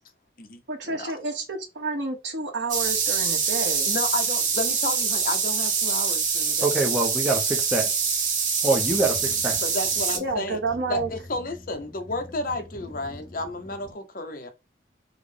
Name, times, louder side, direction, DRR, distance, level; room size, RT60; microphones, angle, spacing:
voice 1, 0.7-3.9 10.2-11.1, right 3 dB, 80° right, 0.9 m, -30 dB
sound 1, 2.7-10.2, right 5 dB, 45° right, 0.7 m, -25 dB
voice 2, 3.9-6.7 9.6-10.6 10.9-14.5, left 2 dB, 50° left, 0.6 m, -32 dB
voice 3, 6.6-7.9 8.6-9.6, right 2 dB, 5° right, 0.5 m, -25 dB
sound 2, 8.8-13.9, left 1 dB, 15° left, 1.0 m, -45 dB
3.7 x 2.1 x 3.2 m
head